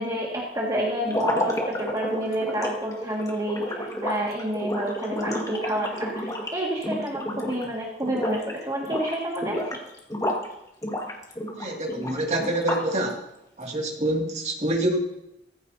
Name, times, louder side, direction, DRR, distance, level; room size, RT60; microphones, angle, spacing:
voice 1, 0.0-9.8, right 1 dB, 25° right, -4 dB, 2.1 m, -29 dB
sound 1, 1.0-7.7 8.0-8.5 8.8-10.5 10.8-13.0, left 1 dB, 20° left, 1.9 m, -30 dB
voice 2, 11.5-13.2 13.6-15.0, right 1 dB, 40° right, 0 dB, 2.5 m, -26 dB
17.5 x 15.0 x 2.9 m, 0.87 s
head